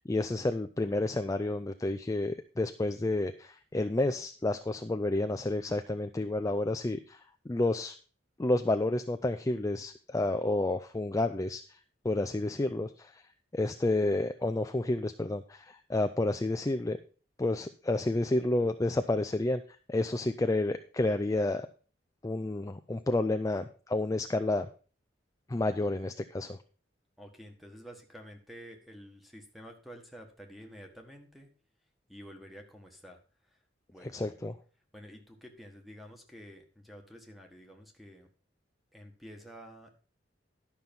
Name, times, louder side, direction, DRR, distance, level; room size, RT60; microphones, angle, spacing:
voice 1, 0.1-7.2 7.5-8.0 8.4-11.8 12.0-13.2 13.5-17.0 17.4-19.6 19.9-21.7 22.2-24.7 25.5-26.6 34.0-34.5, left 2 dB, 20° left, 8 dB, 0.4 m, -30 dB
voice 2, 27.2-31.5 32.1-33.2 33.5-33.6 33.9-34.4 34.9-38.3 38.9-39.9, equal, ahead, 3 dB, 1.6 m, -50 dB
11.5 x 6.0 x 5.3 m, 0.38 s
head